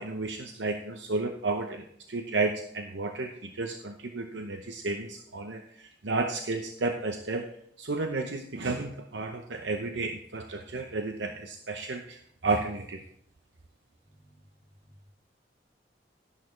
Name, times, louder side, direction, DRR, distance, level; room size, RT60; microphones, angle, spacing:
voice 1, 0.0-13.0, right 3 dB, 80° right, 5 dB, 0.8 m, -32 dB
voice 2, 14.0-15.1, equal, 15° right, -11 dB, 5.6 m, -59 dB
13.5 x 10.5 x 3.2 m, 0.68 s
head